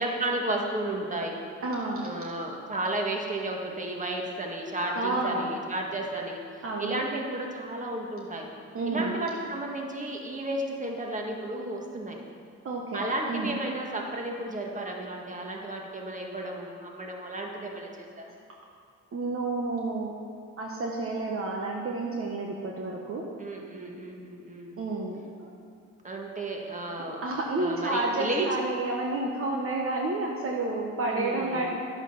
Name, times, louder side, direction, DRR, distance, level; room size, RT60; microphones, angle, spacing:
voice 1, 0.0-1.4 2.0-8.5 8.9-12.2 12.9-18.3 23.4-24.7 26.0-27.2 27.6-28.5 31.0-31.7, right 1 dB, 25° right, 0 dB, 1.8 m, -33 dB
voice 2, 1.6-2.1 5.0-5.6 6.6-7.1 8.7-9.2 12.6-13.5 19.1-20.1 20.6-23.2 24.8-25.5 27.2-31.7, right 2 dB, 45° right, -1 dB, 1.3 m, -30 dB
11.0 x 8.0 x 5.8 m, 2.4 s
cardioid pair, 90°, 30 cm